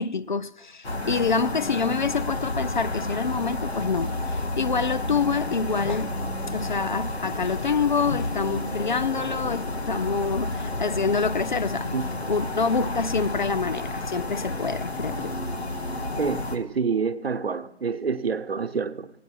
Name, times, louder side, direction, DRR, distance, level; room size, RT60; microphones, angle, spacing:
voice 1, 0.0-6.1 6.5-11.9 12.3-15.4, left 5 dB, 50° left, 0.4 m, -27 dB
sound 1, 0.8-16.6, left 2 dB, 80° left, 1.7 m, -30 dB
voice 2, 16.2-19.1, right 5 dB, 70° right, 1.0 m, -27 dB
16.5 x 9.3 x 6.1 m
figure-of-eight pair, 155°, 31 cm